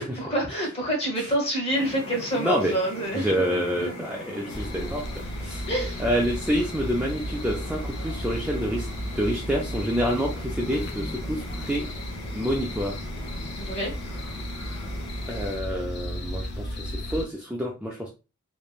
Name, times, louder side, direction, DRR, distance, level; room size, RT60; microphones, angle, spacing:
voice 1, 0.0-4.1 5.7-6.1 13.6-13.9, right 1 dB, 30° left, -1 dB, 1.1 m, -28 dB
sound 1, 1.7-15.6, left 1 dB, 75° left, 0.9 m, -41 dB
voice 2, 2.4-2.7 3.1-5.7 6.0-8.9 9.2-11.8 12.3-12.9 15.3-18.1, equal, 5° right, -2 dB, 0.3 m, -28 dB
sound 2, 4.5-17.2, equal, 50° left, 0.5 m, -34 dB
3.1 x 2.1 x 2.3 m, 0.30 s
head